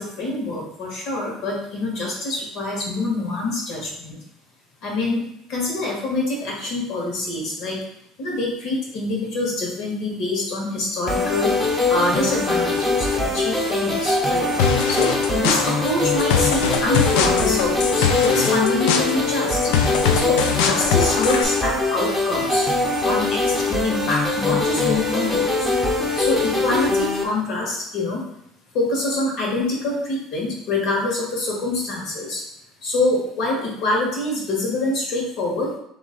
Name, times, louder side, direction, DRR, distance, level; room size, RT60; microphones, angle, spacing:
voice 1, 0.0-4.2 4.8-5.2 5.5-7.8 8.2-11.5 11.9-14.5 14.9-19.7 20.1-22.7 23.0-25.7 26.2-28.2 28.7-32.4 32.8-35.8, left 2 dB, 65° left, -3 dB, 1.6 m, -25 dB
sound 1, 11.1-27.2, left 3 dB, 15° left, 0.7 m, -22 dB
sound 2, 14.6-21.4, left 6 dB, 90° left, 0.4 m, -23 dB
3.2 x 3.0 x 3.9 m, 0.75 s
cardioid pair, 135°, 0 cm